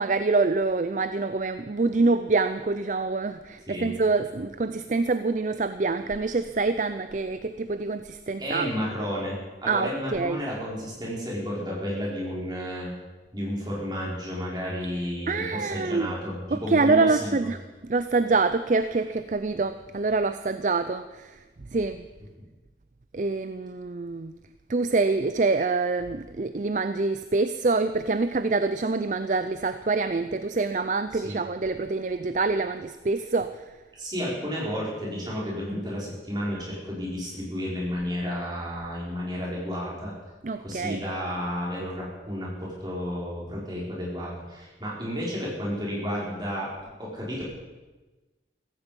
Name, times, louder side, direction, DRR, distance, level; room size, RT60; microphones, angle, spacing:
voice 1, 0.0-8.7 9.6-10.4 15.3-16.1 16.5-21.4 21.7-22.1 23.1-24.3 24.7-33.7 40.4-41.0, right 3 dB, 45° right, 11 dB, 0.5 m, -26 dB
voice 2, 8.4-12.9 13.3-17.5 31.1-31.4 34.0-40.1 40.6-46.7 47.0-47.5, equal, 25° right, -5 dB, 5.4 m, -32 dB
16.0 x 15.5 x 5.4 m, 1.2 s
head